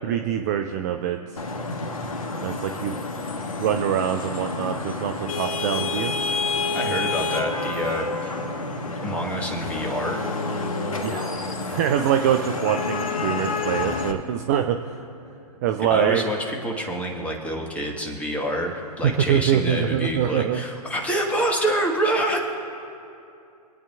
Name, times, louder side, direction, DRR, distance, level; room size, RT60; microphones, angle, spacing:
voice 1, 0.0-1.2 2.4-3.0 3.6-6.1 11.0-11.3 11.7-14.9 15.6-16.2 19.0-20.6, right 9 dB, 25° right, 6 dB, 0.4 m, -24 dB
Vehicle horn car horn honking / Traffic noise roadway noise, 1.4-14.1, left 3 dB, 55° left, 1.3 m, -29 dB
voice 2, 6.7-8.3 9.0-10.2 15.9-22.4, right 1 dB, 5° left, 0 dB, 1.4 m, -27 dB
25.5 x 8.7 x 2.4 m, 2.6 s
figure-of-eight pair, 120°, 20 cm